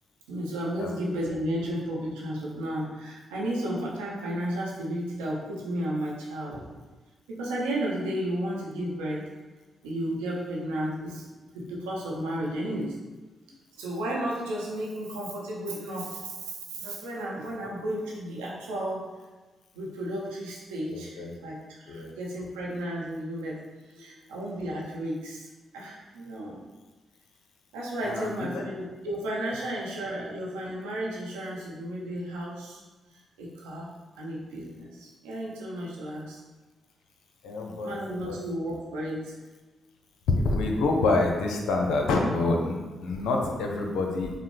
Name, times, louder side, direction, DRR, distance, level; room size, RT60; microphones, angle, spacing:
voice 1, 0.3-6.6 7.3-9.3 9.8-11.2 11.5-13.0 13.8-19.1 19.7-23.6 24.0-25.5 25.7-26.6 27.7-32.8 33.4-33.9 34.2-36.4 37.8-39.3, right 1 dB, 90° right, -4 dB, 0.7 m, -33 dB
voice 2, 20.9-21.3 21.9-22.1 24.0-24.1 28.0-28.6 37.4-37.9 38.2-38.4 40.3-44.3, left 3 dB, 75° left, 1 dB, 0.6 m, -27 dB
5.3 x 2.0 x 3.2 m, 1.2 s
hypercardioid pair, 45°, 0 cm